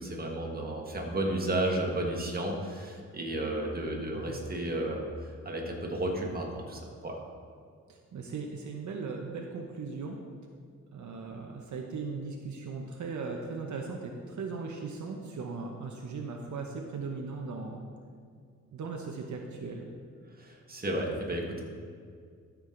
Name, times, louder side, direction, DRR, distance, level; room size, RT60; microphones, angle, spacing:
voice 1, 0.0-7.2 20.4-21.6, right 1 dB, 30° right, 0 dB, 1.6 m, -33 dB
voice 2, 7.9-10.2 10.9-17.9 18.7-19.9, right 4 dB, 70° right, 1 dB, 0.9 m, -38 dB
13.0 x 6.3 x 3.9 m, 2.1 s
wide cardioid pair, 105°, 30 cm